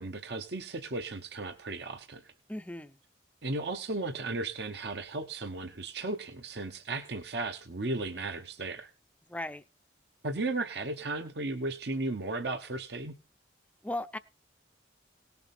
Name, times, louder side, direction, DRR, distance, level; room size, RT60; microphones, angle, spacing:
voice 1, 0.0-2.3 3.4-8.9 10.2-13.1, right 2 dB, 55° right, 7 dB, 1.0 m, -35 dB
voice 2, 2.5-3.0 9.3-9.6 13.8-14.2, left 1 dB, 5° left, 11 dB, 0.6 m, -36 dB
18.0 x 7.1 x 4.3 m, 0.31 s
head